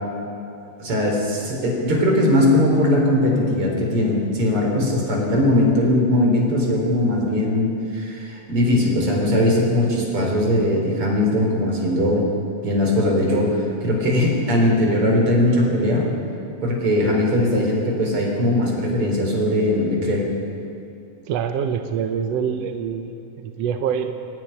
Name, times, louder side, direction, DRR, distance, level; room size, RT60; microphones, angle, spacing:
voice 1, 0.8-12.2 12.6-16.0 16.6-20.2, left 1 dB, 40° right, -1 dB, 4.6 m, -20 dB
voice 2, 21.3-24.1, right 7 dB, 75° right, 6 dB, 1.5 m, -25 dB
27.0 x 11.0 x 9.9 m, 2.8 s
omnidirectional pair, 4.0 m